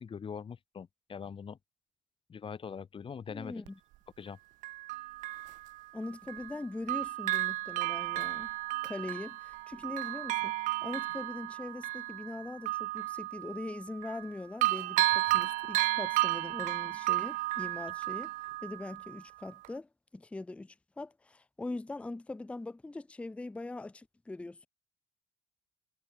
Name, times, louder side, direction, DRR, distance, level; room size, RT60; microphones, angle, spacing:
voice 1, 0.0-1.6 2.3-3.7 4.2-4.4, left 6 dB, 35° left, 1.6 m, -42 dB
voice 2, 3.3-3.8 5.9-8.6 8.8-18.3 18.6-24.7, left 2 dB, 10° left, 0.5 m, -42 dB
Bell, 3.7-3.8 4.6-6.6 6.9-14.3 14.6-19.2 19.6-19.7, right 18 dB, 65° right, 0.6 m, -33 dB
hypercardioid pair, 55°, 15 cm